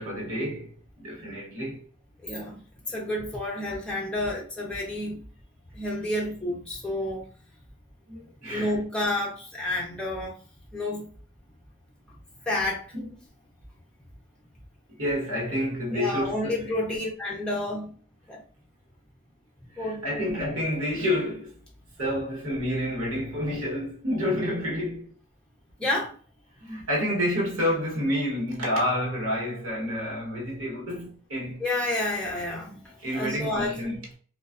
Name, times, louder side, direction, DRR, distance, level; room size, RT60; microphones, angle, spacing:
voice 1, 0.0-1.9 8.1-8.8 12.9-13.1 15.0-16.7 19.7-21.6 22.0-25.2 26.6-31.6 33.0-34.1, equal, 85° right, 1.1 m, -29 dB
voice 2, 2.2-2.6 2.9-5.3 5.7-7.3 8.5-10.4 10.7-11.1 12.5-12.8 15.9-17.9 18.3-18.4 19.8-20.4 25.8-26.1 31.6-34.0, left 1 dB, 5° left, 0.6 m, -30 dB
2.4 x 2.3 x 2.3 m
head